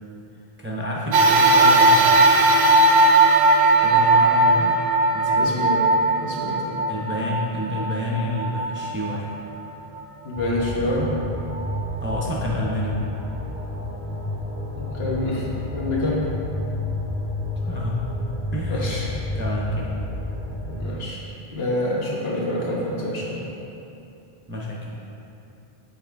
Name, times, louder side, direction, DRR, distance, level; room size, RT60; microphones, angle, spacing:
voice 1, 0.6-2.6 3.8-4.7 5.1-5.5 6.9-9.3 12.0-13.0 17.6-18.0 18.5-19.9 24.5-25.0, left 1 dB, 15° right, -4 dB, 0.4 m, -29 dB
sound 1, 1.0-14.5, right 2 dB, 40° left, 1.3 m, -48 dB
sound 2, 1.1-9.7 10.3-10.4 11.5-11.6, right 2 dB, 65° right, 0.7 m, -18 dB
voice 2, 5.4-5.8 6.2-6.7 10.2-11.0 14.7-15.4 15.7-16.2 18.7-19.0 20.8-21.2 21.5-23.5, left 1 dB, 75° left, -5 dB, 1.4 m, -27 dB
sound 3, 10.3-20.8, left 1 dB, 10° left, 1.0 m, -30 dB
7.3 x 4.3 x 3.4 m, 2.8 s
omnidirectional pair, 1.1 m